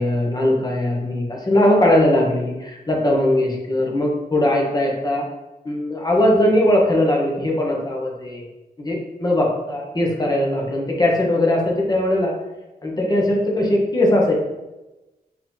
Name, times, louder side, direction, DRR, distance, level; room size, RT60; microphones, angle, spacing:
voice 1, 0.0-5.2 5.6-8.5 8.8-12.3 12.8-14.3, left 1 dB, 25° left, -2 dB, 1.0 m, -19 dB
4.7 x 2.9 x 3.8 m, 1.0 s
wide cardioid pair, 120°, 16 cm